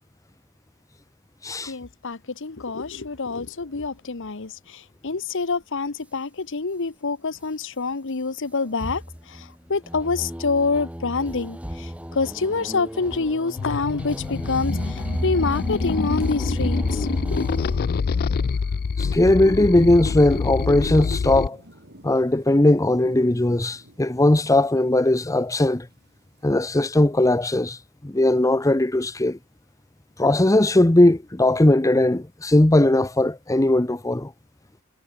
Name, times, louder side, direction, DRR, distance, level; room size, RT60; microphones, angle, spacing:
voice 1, 1.7-9.0 9.7-17.4, left 4 dB, 60° left, 1.1 m, -27 dB
sound 1, 8.8-17.8, equal, 5° right, 2.7 m, -31 dB
sound 2, 13.6-21.5, left 5 dB, 45° left, 0.4 m, -26 dB
voice 2, 19.0-21.6 22.0-25.9 26.4-27.8 28.0-29.4 30.2-34.3, left 1 dB, 15° left, 0.8 m, -19 dB
sound 3, 19.8-26.4, right 1 dB, 50° right, 6.6 m, -46 dB
head